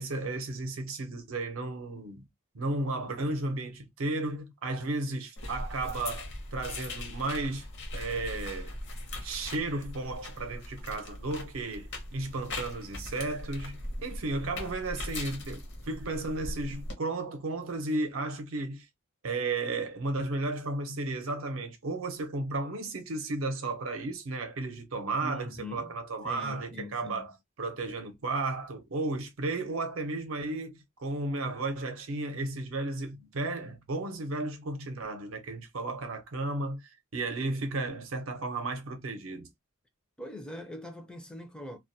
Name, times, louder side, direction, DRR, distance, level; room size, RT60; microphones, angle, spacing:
voice 1, 0.0-2.2 2.5-7.7 7.9-8.8 9.2-18.9 19.2-27.3 27.6-39.5, right 2 dB, 70° right, 0.6 m, -34 dB
sound 1, 5.4-16.9, left 1 dB, 55° left, 0.8 m, -40 dB
voice 2, 25.2-25.9 26.2-27.4 40.2-41.8, left 1 dB, 5° left, 0.4 m, -42 dB
2.2 x 2.1 x 2.6 m
head